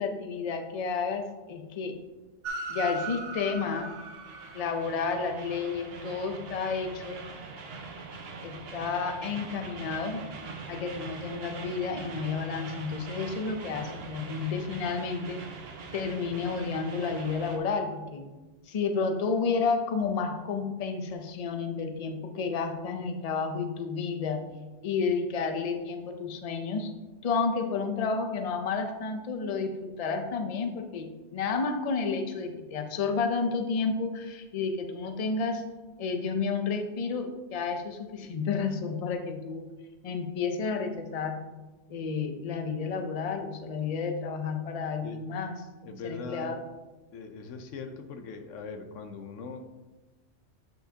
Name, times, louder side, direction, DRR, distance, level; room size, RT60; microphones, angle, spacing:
voice 1, 0.0-2.0 2.7-4.0 4.5-7.2 8.4-10.2 10.7-15.4 15.9-18.3 18.7-24.4 24.8-26.9 27.2-35.6 36.0-39.7 40.0-41.4 41.9-45.6 46.0-46.6, left 5 dB, 40° left, 5 dB, 0.6 m, -31 dB
Train, 2.4-17.6, right 4 dB, 60° right, 1.0 m, -41 dB
voice 2, 45.8-46.6 47.1-49.6, left 4 dB, 90° left, 7 dB, 1.1 m, -40 dB
8.8 x 5.7 x 2.8 m, 1.2 s
omnidirectional pair, 1.2 m